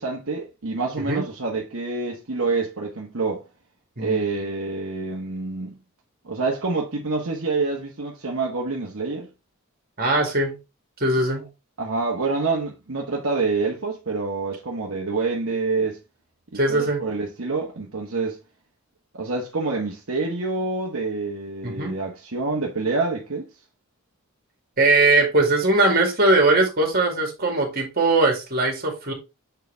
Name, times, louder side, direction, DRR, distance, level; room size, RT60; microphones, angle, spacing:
voice 1, 0.0-3.4 4.0-5.8 6.2-9.3 11.8-16.0 16.5-18.4 19.1-23.5, right 3 dB, 60° right, 1.2 m, -27 dB
voice 2, 4.0-4.4 10.0-10.6 11.0-11.5 16.5-17.1 21.6-22.0 24.8-29.1, right 2 dB, 45° right, 2.3 m, -20 dB
6.8 x 4.7 x 3.4 m
head